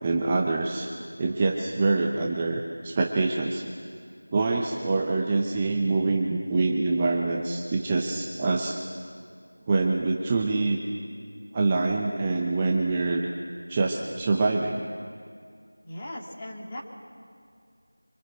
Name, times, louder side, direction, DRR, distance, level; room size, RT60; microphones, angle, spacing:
voice 1, 0.0-0.9 1.2-3.6 4.3-8.8 9.7-10.8 11.5-13.3 13.7-14.9, right 3 dB, 15° right, 0 dB, 0.8 m, -25 dB
voice 2, 15.8-16.8, left 1 dB, 15° left, -2 dB, 2.1 m, -38 dB
25.5 x 24.0 x 8.0 m, 2.2 s
figure-of-eight pair, 175°, 0 cm